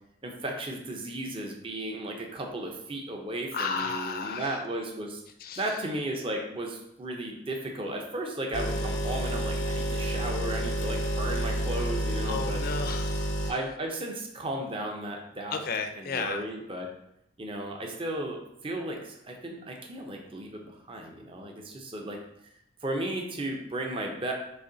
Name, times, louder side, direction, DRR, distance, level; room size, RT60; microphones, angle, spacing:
voice 1, 0.2-5.2 5.6-12.6 13.5-15.6 15.9-16.9 17.4-22.2 22.8-24.3, right 1 dB, 30° right, 1 dB, 0.6 m, -35 dB
voice 2, 3.5-4.6 5.4-5.6 12.3-13.5 15.5-16.4, left 5 dB, 50° left, 6 dB, 0.4 m, -33 dB
sound 1, 8.5-13.5, equal, 85° left, 0.7 m, -29 dB
4.1 x 3.0 x 3.8 m, 0.79 s
head